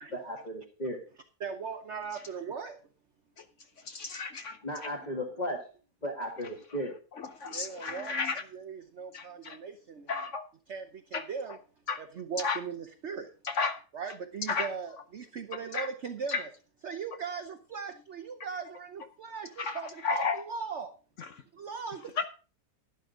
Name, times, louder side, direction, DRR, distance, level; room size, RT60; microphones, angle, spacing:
voice 1, 0.1-1.0 4.6-5.6 6.0-6.9, equal, 25° left, -2 dB, 1.7 m, -35 dB
voice 2, 1.4-2.8 7.4-8.2 8.5-10.1 10.7-11.6 12.0-13.3 13.9-16.5 16.8-20.9 21.5-22.3, right 6 dB, 50° right, 6 dB, 1.0 m, -39 dB
voice 3, 3.8-4.9 7.2-8.4 9.1-9.6 10.1-10.4 11.1-11.3 11.9-12.0 12.4-12.6 13.4-13.8 14.5-14.7 15.7-15.9 16.3-16.4 19.6-20.4 21.2-21.4 22.2-22.3, left 4 dB, 55° left, 10 dB, 0.9 m, -33 dB
11.5 x 11.0 x 3.8 m, 0.35 s
omnidirectional pair, 1.9 m